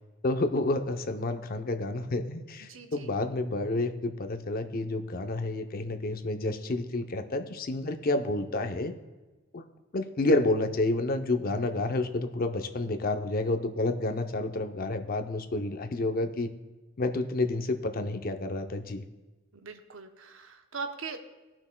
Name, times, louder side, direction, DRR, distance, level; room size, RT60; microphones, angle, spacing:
voice 1, 0.2-8.9 9.5-9.6 9.9-16.5 17.0-19.0, left 2 dB, 45° left, 6 dB, 0.6 m, -29 dB
voice 2, 2.6-3.1 19.5-21.2, right 5 dB, 75° right, 7 dB, 0.8 m, -40 dB
17.5 x 6.0 x 2.2 m, 1.2 s
head